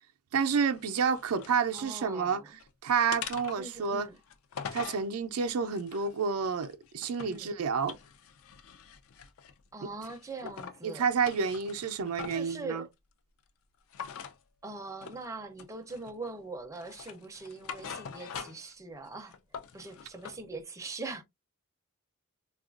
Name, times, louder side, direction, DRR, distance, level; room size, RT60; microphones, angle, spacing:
voice 1, 0.3-2.4 2.8-4.1 4.7-7.9 10.8-12.8, right 6 dB, 80° right, 0.4 m, -29 dB
sound 1, 0.7-1.9 2.3-2.7 3.1-5.1 5.6-7.4 7.8-9.6 10.0-10.8 11.1-12.5 13.9-14.4 15.0-15.3 15.6-16.3 16.7-18.7 19.1-20.4, left 7 dB, 70° left, 0.4 m, -44 dB
voice 2, 1.7-2.6 3.6-4.2 7.3-7.5 9.7-11.1 12.3-12.9 14.6-19.4 19.7-21.2, right 3 dB, 15° right, 0.4 m, -42 dB
3.6 x 2.3 x 2.3 m
head